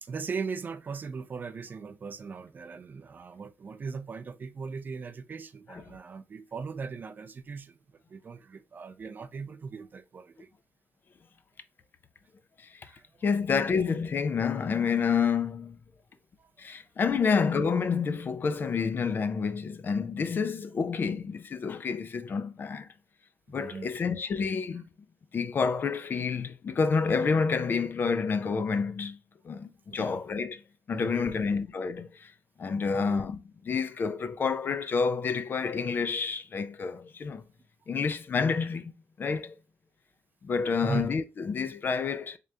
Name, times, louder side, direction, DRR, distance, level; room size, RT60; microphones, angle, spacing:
voice 1, 0.0-7.8 8.1-10.5 12.8-13.3 16.4-16.5 23.5-23.9 29.9-30.2 30.9-31.6 32.9-33.2 40.8-41.1, right 5 dB, 40° right, 0.4 m, -39 dB
voice 2, 12.6-12.9 13.2-15.8 16.6-22.9 23.5-24.8 25.3-29.2 29.4-30.6 30.9-32.3 32.6-37.4 37.9-38.9 39.2-39.5 40.4-42.4, left 5 dB, 45° left, 0.4 m, -29 dB
3.7 x 3.3 x 2.7 m
wide cardioid pair, 140°, 5 cm